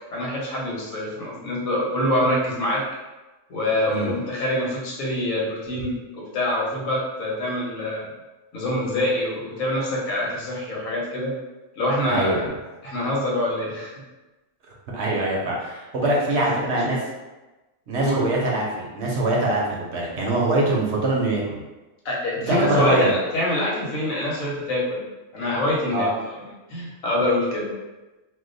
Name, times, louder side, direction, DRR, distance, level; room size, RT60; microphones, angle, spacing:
voice 1, 0.1-2.8 3.5-8.1 8.5-11.3 11.8-12.4 12.8-13.9 16.0-16.5 18.0-18.2 22.0-25.0 25.3-26.1 26.3-26.4 26.7-27.7, left 1 dB, 85° left, -4 dB, 1.3 m, -25 dB
voice 2, 12.1-12.5 14.9-17.0 17.9-21.6 22.4-23.2 25.9-26.1, right 2 dB, 60° right, -3 dB, 0.9 m, -23 dB
2.8 x 2.2 x 3.8 m, 1.1 s
omnidirectional pair, 1.4 m